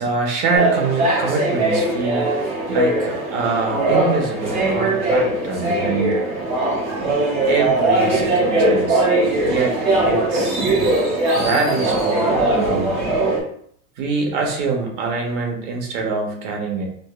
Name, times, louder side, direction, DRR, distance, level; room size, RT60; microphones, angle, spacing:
voice 1, 0.0-6.2 7.5-9.1 9.5-10.6 11.3-13.0 14.0-16.9, right 4 dB, 60° right, 1 dB, 1.0 m, -24 dB
sound 1, 0.5-13.4, right 2 dB, 20° right, 0.3 m, -20 dB
4.9 x 2.1 x 2.4 m, 0.65 s
cardioid pair, 175°, 39 cm